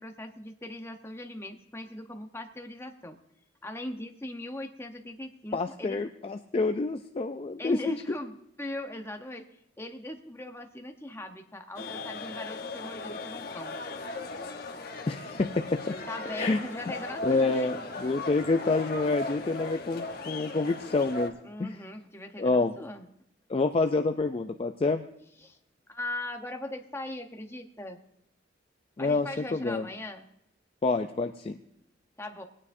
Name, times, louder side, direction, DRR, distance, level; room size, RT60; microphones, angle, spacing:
voice 1, 0.0-3.2 3.6-6.0 7.6-9.4 9.8-13.8 16.1-17.9 21.4-23.1 25.4-25.6 25.9-28.0 29.0-30.3 32.2-32.4, left 1 dB, 15° left, 4 dB, 0.9 m, -39 dB
voice 2, 5.5-8.0 15.1-15.9 16.3-16.6 17.2-21.3 21.6-21.8 22.4-22.7 23.5-25.0 29.0-29.9 30.8-31.6, left 3 dB, 30° left, 6 dB, 0.4 m, -27 dB
sound 1, 11.8-21.3, left 2 dB, 55° left, 1.2 m, -38 dB
20.0 x 9.8 x 2.6 m, 0.76 s
head